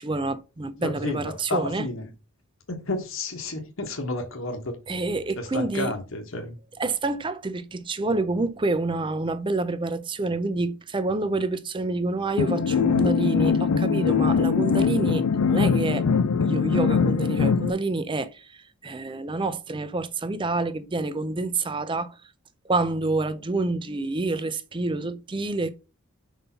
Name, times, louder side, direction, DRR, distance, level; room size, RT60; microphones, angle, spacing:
voice 1, 0.0-1.9 4.9-5.9 6.8-16.1 16.4-22.2 22.6-25.7, right 3 dB, 20° right, 0.5 m, -28 dB
voice 2, 0.8-2.1 2.7-4.8 5.4-6.6, left 2 dB, 60° left, 1.2 m, -31 dB
sound 1, 12.4-17.7, left 5 dB, 90° left, 0.5 m, -22 dB
5.4 x 4.1 x 5.6 m
head